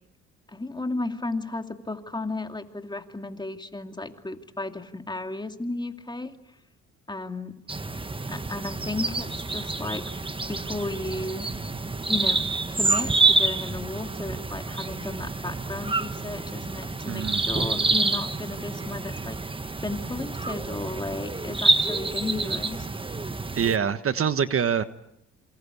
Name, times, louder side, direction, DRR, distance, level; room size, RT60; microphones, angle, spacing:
voice 1, 0.5-6.4 7.1-7.6 8.3-10.1 10.5-11.5 12.1-12.4 12.7-19.4 19.8-22.9, left 2 dB, 15° left, 6 dB, 2.6 m, -34 dB
sound 1, 7.7-23.8, right 3 dB, 15° right, 1.4 m, -27 dB
voice 2, 17.1-17.5 23.5-24.8, right 7 dB, 45° right, 11 dB, 1.4 m, -25 dB
27.5 x 24.5 x 8.5 m, 0.76 s
cardioid pair, 90°, 30 cm